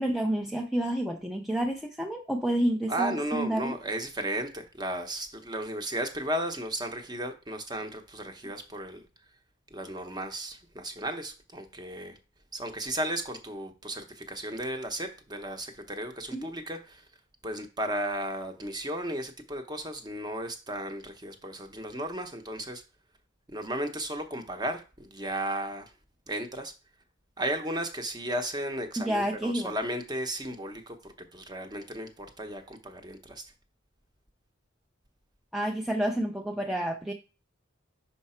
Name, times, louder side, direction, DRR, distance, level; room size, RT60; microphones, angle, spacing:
voice 1, 0.0-3.8 16.3-16.5 29.0-29.7 35.5-37.1, right 1 dB, ahead, 0.4 m, -29 dB
voice 2, 2.9-9.0 9.7-12.2 12.5-17.0 17.4-22.8 23.5-25.9 26.3-26.7 27.4-33.5, right 1 dB, 20° right, 0.8 m, -34 dB
5.7 x 4.6 x 4.3 m
head